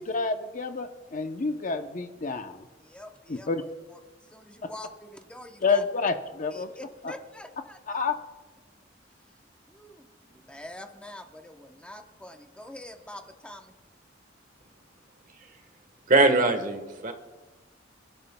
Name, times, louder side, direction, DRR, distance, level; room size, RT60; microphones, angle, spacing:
voice 1, 0.0-2.6 3.3-3.6 5.6-6.7 7.0-7.1 7.9-8.2, left 4 dB, 45° left, 7 dB, 0.7 m, -28 dB
voice 2, 2.8-5.8 6.5-7.8 9.7-13.7, left 1 dB, 5° left, 5 dB, 0.8 m, -45 dB
voice 3, 16.1-17.1, right 2 dB, 45° right, 7 dB, 1.3 m, -21 dB
26.5 x 11.5 x 2.2 m, 1.2 s
head